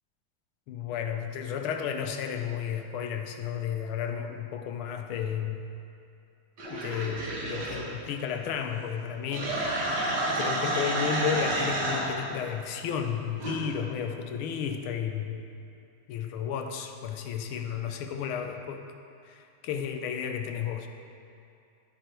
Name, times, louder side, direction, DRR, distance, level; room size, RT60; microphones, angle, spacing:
voice 1, 0.7-5.6 6.7-9.7 10.3-15.5 16.1-18.8 19.2-20.9, left 8 dB, 90° left, 5 dB, 1.5 m, -33 dB
sound 1, 6.6-7.8 9.3-12.1 13.4-13.5, right 1 dB, 60° right, 2.0 m, -30 dB
14.5 x 4.9 x 4.5 m, 2.5 s
omnidirectional pair, 2.3 m